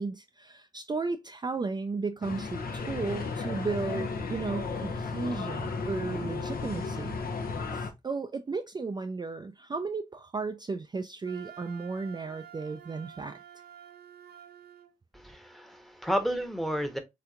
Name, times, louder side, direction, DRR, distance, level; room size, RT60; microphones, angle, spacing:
voice 1, 0.0-7.2 7.7-13.4, right 4 dB, 25° right, 0.3 m, -34 dB
sound 1, 2.2-7.9, left 4 dB, 65° left, 0.7 m, -34 dB
Wind instrument woodwind instrument, 11.2-14.9, right 9 dB, 80° right, 0.5 m, -50 dB
voice 2, 15.1-17.0, equal, ahead, 0.9 m, -31 dB
3.2 x 2.9 x 2.4 m
supercardioid pair, 45°, 16 cm